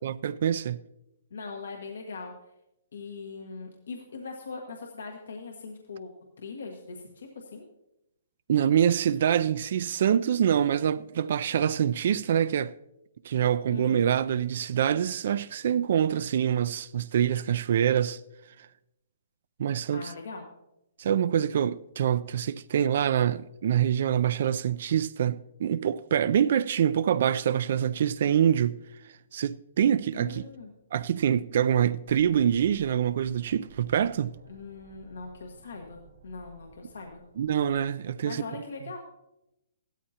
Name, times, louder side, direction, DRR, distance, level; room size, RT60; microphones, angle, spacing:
voice 1, 0.0-0.8 8.5-12.7 13.2-18.2 18.6-18.7 19.6-20.1 21.0-28.8 29.3-30.5 30.9-34.3 37.4-38.4, right 9 dB, 55° right, 0.3 m, -25 dB
voice 2, 1.3-2.3 2.9-6.1 6.4-7.6 13.7-14.1 19.9-20.5 30.1-30.7 34.5-37.2 38.2-39.0, left 4 dB, 85° left, 1.5 m, -41 dB
sound 1, 32.1-37.8, right 4 dB, 90° right, 2.9 m, -54 dB
15.5 x 13.0 x 2.8 m
hypercardioid pair, 155°, 0 cm